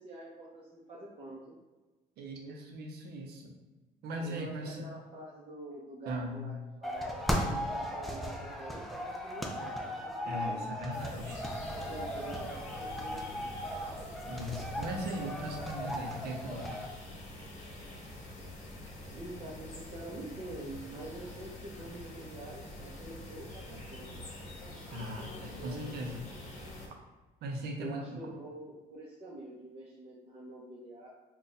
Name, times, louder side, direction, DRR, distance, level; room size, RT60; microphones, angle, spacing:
voice 1, 0.0-1.5 4.2-6.5 6.8-10.6 11.7-13.5 19.1-24.2 25.4-25.9 27.8-31.1, right 1 dB, 35° right, -6 dB, 0.7 m, -46 dB
voice 2, 2.2-3.5 4.0-4.8 6.1-6.4 10.3-11.4 14.3-16.8 24.9-26.2 27.4-28.2, equal, 70° right, 2 dB, 0.7 m, -39 dB
sound 1, 6.8-16.9, equal, ahead, 0.4 m, -37 dB
sound 2, 10.9-26.9, left 1 dB, 45° left, 1.0 m, -46 dB
2.6 x 2.3 x 4.0 m, 1.2 s
cardioid pair, 110°, 17 cm